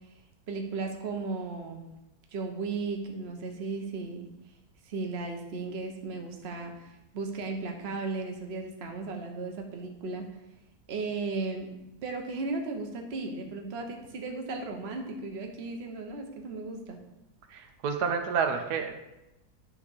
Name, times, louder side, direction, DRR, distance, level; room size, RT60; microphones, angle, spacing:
voice 1, 0.5-1.9 2.3-4.3 4.8-10.3 10.9-11.7 12.0-17.0, right 3 dB, 45° right, 3 dB, 1.1 m, -35 dB
voice 2, 17.5-18.9, right 6 dB, 85° right, 5 dB, 1.3 m, -29 dB
9.9 x 3.6 x 6.4 m, 0.94 s
omnidirectional pair, 1.7 m